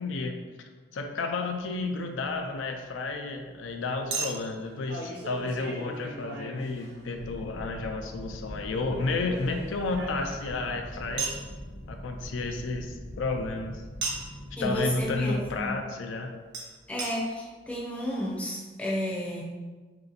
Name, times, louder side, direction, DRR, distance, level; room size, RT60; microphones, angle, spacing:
voice 1, 0.0-11.4 11.9-13.8 14.6-16.3, left 3 dB, 85° left, 4 dB, 0.4 m, -32 dB
Chink clink, 1.3-1.4 4.1-7.3 8.8-10.5 11.2-11.5 14.0-14.4 16.5-16.6 17.0-17.1 17.8-17.9 18.0-18.1, right 3 dB, 60° right, 0.8 m, -36 dB
sound 1, 7.1-15.6, equal, 45° left, 0.7 m, -42 dB
voice 2, 14.6-15.8 16.9-19.4, equal, 5° left, -4 dB, 0.5 m, -32 dB
3.3 x 2.8 x 3.9 m, 1.4 s
head